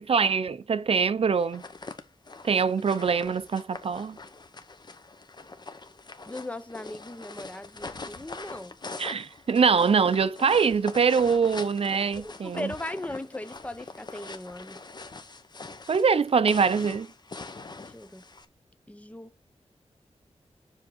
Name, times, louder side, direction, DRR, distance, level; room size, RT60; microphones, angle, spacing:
voice 1, 0.0-1.6 2.4-4.2 9.0-12.7 15.9-17.1, right 6 dB, 60° right, 0.5 m, -23 dB
sound 1, 1.4-18.5, left 3 dB, 40° left, 0.9 m, -43 dB
voice 2, 6.2-8.7 12.2-14.8 17.8-18.2 18.9-19.3, left 1 dB, 10° left, 0.7 m, -38 dB
7.3 x 3.6 x 6.3 m
wide cardioid pair, 105°, 11 cm